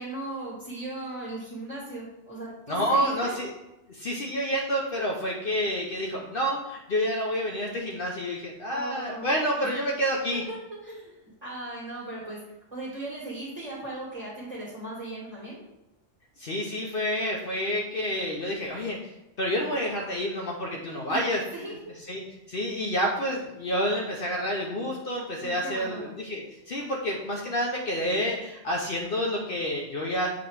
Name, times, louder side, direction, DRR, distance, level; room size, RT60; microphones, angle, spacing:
voice 1, 0.0-3.3 8.7-9.3 10.5-10.6 10.8-11.1 11.4-12.4 12.7-15.6 21.1-21.7 25.4-26.1, right 2 dB, 25° right, -7 dB, 1.8 m, -37 dB
voice 2, 2.7-3.5 3.9-10.4 16.4-19.1 19.4-21.4 22.1-30.3, equal, 55° left, 0 dB, 0.8 m, -29 dB
7.2 x 3.0 x 4.6 m, 0.95 s
omnidirectional pair, 1.3 m